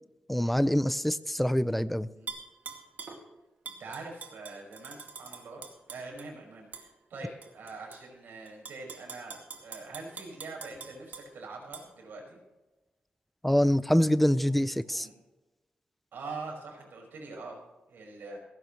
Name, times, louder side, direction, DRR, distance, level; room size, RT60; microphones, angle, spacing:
voice 1, 0.3-2.1 13.4-15.1, equal, 5° left, 15 dB, 0.5 m, -25 dB
Tap / Glass, 2.3-3.2 3.6-6.3 6.7-6.9 7.4-8.0 8.5-11.2 11.7-11.8, right 5 dB, 55° right, 2.3 m, -43 dB
voice 2, 3.8-12.4 14.4-14.5 14.8-15.1 16.1-18.4, right 3 dB, 80° right, 0 dB, 5.5 m, -44 dB
17.0 x 15.5 x 3.2 m, 1.1 s
wide cardioid pair, 155°, 3 cm